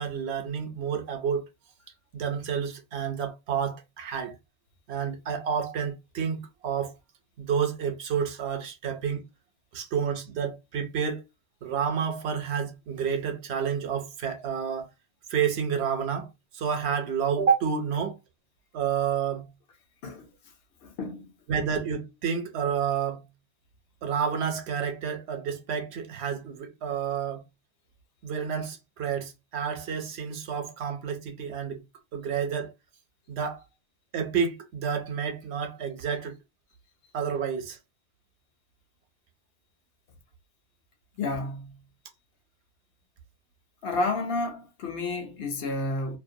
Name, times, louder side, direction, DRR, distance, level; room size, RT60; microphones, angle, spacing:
voice 1, 0.0-1.4 2.1-4.3 4.9-6.9 7.4-9.2 9.7-11.2 11.6-14.9 15.3-18.2 18.7-19.5 21.5-23.2 24.0-27.4 28.2-31.8 32.1-32.7 33.3-33.6 34.1-36.3 37.1-37.8, right 7 dB, 70° right, 0.8 m, -29 dB
voice 2, 20.8-21.3 41.2-41.8 43.8-46.2, left 2 dB, 65° left, 0.8 m, -31 dB
2.5 x 2.1 x 2.6 m
omnidirectional pair, 1.2 m